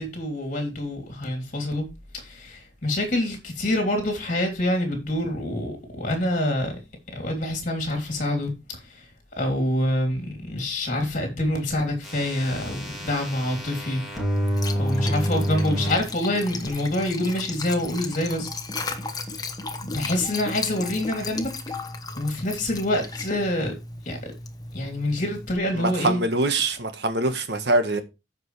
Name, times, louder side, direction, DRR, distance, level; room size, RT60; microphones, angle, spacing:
voice 1, 0.0-1.9 2.1-6.8 7.1-9.1 9.4-14.0 14.7-18.5 18.9-19.0 19.8-21.5 22.2-23.8 24.0-24.2 24.7-26.2, left 1 dB, 45° left, 3.2 m, -26 dB
sound 1, 12.0-15.9 16.7-16.8, equal, ahead, 2.6 m, -28 dB
Liquid, 14.3-25.6, left 3 dB, 20° left, 1.1 m, -35 dB
voice 2, 25.7-28.0, right 2 dB, 65° right, 1.3 m, -24 dB
14.5 x 5.2 x 3.3 m
head